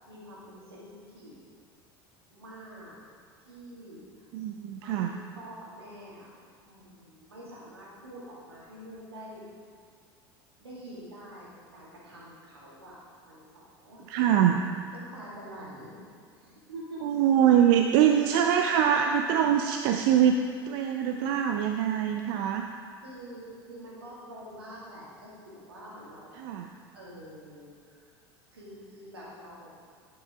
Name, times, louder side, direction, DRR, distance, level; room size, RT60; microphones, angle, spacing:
voice 1, 0.1-1.4 2.3-2.9 3.5-4.2 4.8-6.3 6.6-9.4 10.6-13.0 13.3-14.5 14.9-16.0 16.3-17.0 23.0-26.4 26.9-28.1 28.5-29.7, right 1 dB, 90° right, -6 dB, 2.1 m, -46 dB
voice 2, 4.3-5.1 14.1-14.7 17.0-22.7 26.4-26.7, right 9 dB, 60° right, 4 dB, 0.5 m, -24 dB
10.5 x 5.9 x 3.6 m, 2.1 s
hypercardioid pair, 75°, 13 cm